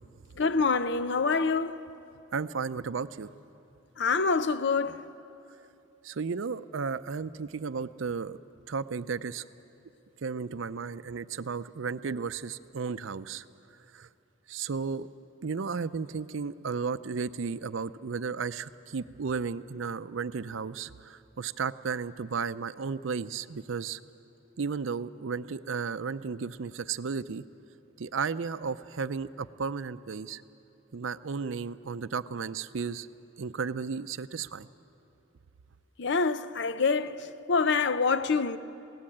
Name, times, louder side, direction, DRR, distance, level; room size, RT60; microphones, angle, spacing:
voice 1, 0.4-1.8 4.0-5.1 36.0-38.6, left 4 dB, 60° left, 0.6 m, -26 dB
voice 2, 2.3-3.3 6.0-8.4 8.7-9.4 10.2-13.4 13.9-14.1 14.5-15.1 15.4-24.0 24.6-27.4 28.0-30.4 30.9-33.1 33.4-34.7, right 5 dB, 75° right, 0.5 m, -34 dB
20.5 x 17.5 x 8.7 m
head